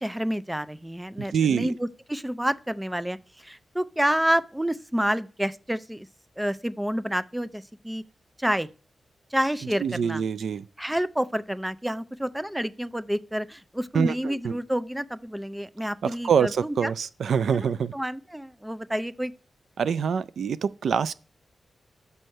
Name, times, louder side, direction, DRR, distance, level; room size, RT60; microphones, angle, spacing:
voice 1, 0.0-6.1 6.4-8.0 8.4-8.7 9.3-10.2 10.8-16.9 17.5-17.6 17.9-19.3, equal, 5° right, 0.4 m, -29 dB
voice 2, 1.3-1.7 9.8-10.6 13.9-14.6 16.0-17.9 19.8-21.1, right 7 dB, 80° right, 0.3 m, -25 dB
6.2 x 5.4 x 6.4 m
wide cardioid pair, 90°, 0 cm